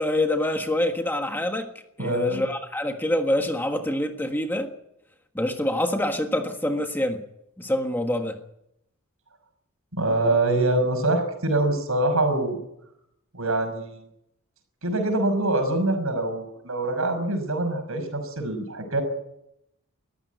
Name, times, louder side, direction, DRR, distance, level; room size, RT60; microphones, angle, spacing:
voice 1, 0.0-1.7 2.0-4.7 5.3-7.2 7.6-8.4, left 1 dB, 10° left, 5 dB, 1.4 m, -25 dB
voice 2, 2.0-2.4 9.9-12.6 13.3-14.0 14.8-19.0, right 2 dB, 70° right, 7 dB, 5.9 m, -24 dB
22.0 x 14.5 x 9.4 m, 0.80 s
head